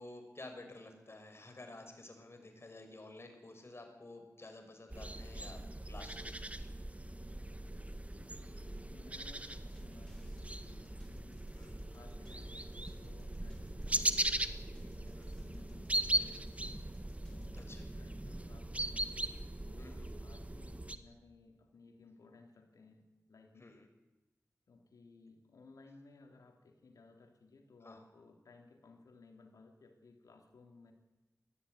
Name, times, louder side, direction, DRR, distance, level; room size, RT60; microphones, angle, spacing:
voice 1, 0.0-5.6 5.9-6.3 11.5-11.8 15.2-15.3 17.5-17.8 19.8-20.1 23.6-23.9 27.8-28.0, left 2 dB, 50° left, 5 dB, 6.0 m, -51 dB
sound 1, 4.9-21.0, right 1 dB, 25° right, 1.8 m, -39 dB
voice 2, 8.1-11.5 11.9-14.2 14.6-16.8 17.2-19.1 19.6-23.7 24.7-30.9, left 3 dB, 90° left, 4 dB, 3.4 m, -60 dB
sound 2, 9.7-17.6, left 1 dB, 10° left, 5.3 m, -57 dB
20.5 x 14.5 x 9.8 m, 1.1 s
cardioid pair, 40°, 6 cm